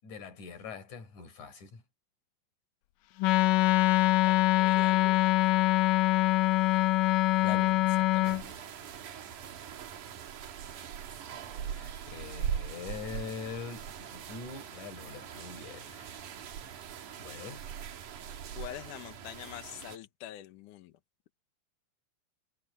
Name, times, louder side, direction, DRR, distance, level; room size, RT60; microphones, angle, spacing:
voice 1, 0.0-1.8 7.4-8.7 11.6-16.2 17.2-17.6, left 5 dB, 50° left, 5.9 m, -43 dB
Wind instrument woodwind instrument, 3.2-8.4, left 16 dB, 90° left, 1.9 m, -24 dB
voice 2, 4.2-5.3 18.6-21.0, left 12 dB, 70° left, 2.2 m, -45 dB
sound 1, 8.2-20.0, right 8 dB, 60° right, 3.0 m, -41 dB
omnidirectional pair, 4.6 m